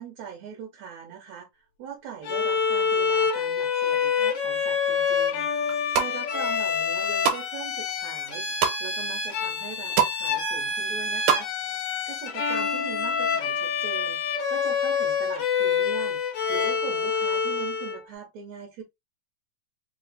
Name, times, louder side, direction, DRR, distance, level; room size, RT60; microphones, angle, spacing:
voice 1, 0.0-5.5 5.9-8.5 8.8-11.5 12.1-16.2 16.5-18.8, right 7 dB, 70° right, 2.1 m, -41 dB
Bowed string instrument, 2.2-18.0, left 6 dB, 65° left, 1.1 m, -27 dB
sound 1, 5.6-6.1 6.7-7.4 7.8-8.8 9.3-9.4 9.6-10.2 10.5-11.4 11.7-11.8, right 8 dB, 90° right, 2.3 m, -25 dB
4.9 x 2.0 x 4.0 m
omnidirectional pair, 3.5 m